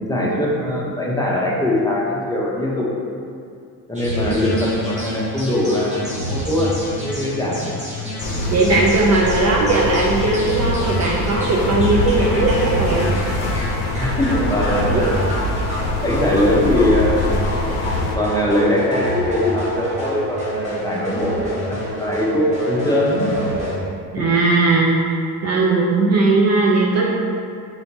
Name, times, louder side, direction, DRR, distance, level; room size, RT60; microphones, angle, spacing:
voice 1, 0.0-2.9 3.9-7.7 14.0-15.2 16.0-17.5 18.1-23.3 24.2-24.3, left 1 dB, 10° left, -5 dB, 0.8 m, -21 dB
sound 1, 3.9-23.8, equal, 15° right, 1.3 m, -27 dB
sound 2, 8.2-18.2, left 2 dB, 90° left, 0.6 m, -24 dB
voice 2, 8.5-13.1 14.6-15.1 24.1-25.2 25.4-27.1, right 3 dB, 35° right, -2 dB, 0.5 m, -18 dB
4.2 x 4.0 x 2.8 m, 2.4 s
supercardioid pair, 85°, 43 cm